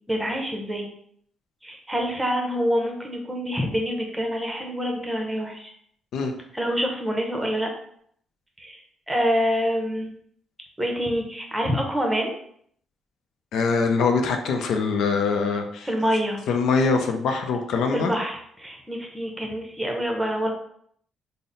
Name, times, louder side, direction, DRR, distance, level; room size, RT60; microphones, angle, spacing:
voice 1, 0.1-0.9 1.6-5.7 6.5-7.7 8.6-8.8 9.1-10.1 10.8-12.3 15.8-16.4 17.9-20.5, equal, 10° right, 1 dB, 0.8 m, -26 dB
voice 2, 13.5-15.9 16.5-18.1, left 4 dB, 75° left, 4 dB, 0.5 m, -23 dB
3.9 x 2.0 x 3.9 m, 0.66 s
cardioid pair, 90°, 0 cm